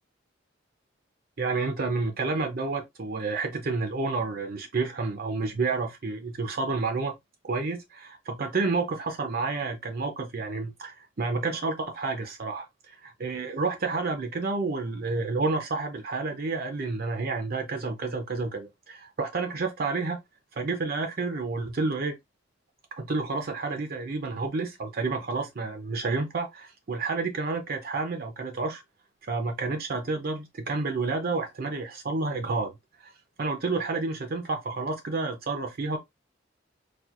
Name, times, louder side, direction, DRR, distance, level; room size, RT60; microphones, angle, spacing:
voice 1, 1.4-7.2 7.4-20.2 20.5-22.1 23.0-28.8 29.3-32.7 33.0-33.1 33.4-36.0, right 3 dB, 55° right, 0.6 m, -30 dB
4.2 x 2.5 x 2.4 m
head